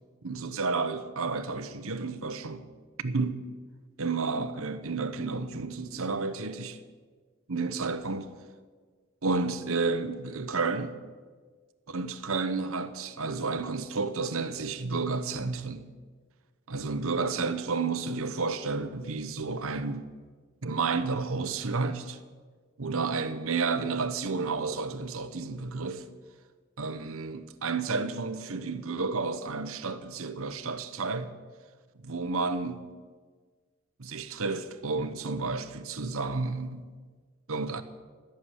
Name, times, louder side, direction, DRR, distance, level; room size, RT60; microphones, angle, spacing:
voice 1, 0.2-2.7 3.0-3.5 4.0-6.8 7.5-8.3 9.2-11.0 11.9-15.9 16.7-20.1 20.6-22.2 22.8-26.0 26.8-31.3 32.0-32.9 34.0-36.9 37.5-37.8, right 4 dB, 65° right, 1.0 m, -31 dB
14.5 x 7.0 x 9.8 m
head